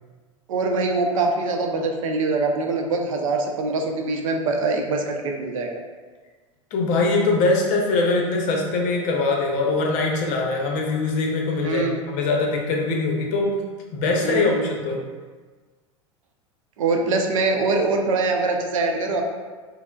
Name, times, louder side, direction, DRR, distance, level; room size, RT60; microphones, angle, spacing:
voice 1, 0.5-5.8 11.6-12.0 14.2-14.8 16.8-19.2, right 3 dB, 75° right, 3 dB, 0.5 m, -23 dB
voice 2, 6.7-13.6 13.9-15.0, left 3 dB, 50° left, 0 dB, 0.7 m, -22 dB
4.3 x 2.0 x 2.3 m, 1.4 s
hypercardioid pair, 85°, 17 cm